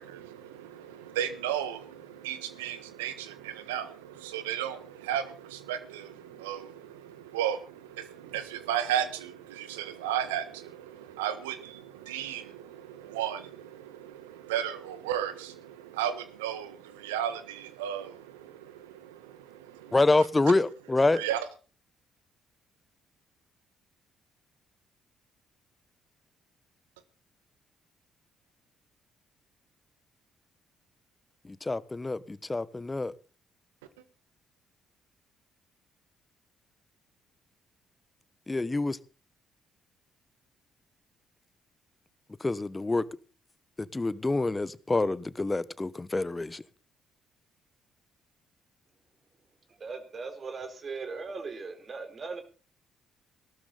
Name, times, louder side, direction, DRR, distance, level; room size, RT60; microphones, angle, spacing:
voice 1, 0.0-20.0 21.1-21.5, right 10 dB, 80° right, 1.4 m, -35 dB
voice 2, 19.9-21.2 31.4-33.1 38.5-39.0 42.4-43.0 43.8-46.6, left 2 dB, 20° left, 1.1 m, -27 dB
voice 3, 49.8-52.4, right 4 dB, 45° right, 4.2 m, -38 dB
18.0 x 12.5 x 4.1 m
hypercardioid pair, 45°, 0 cm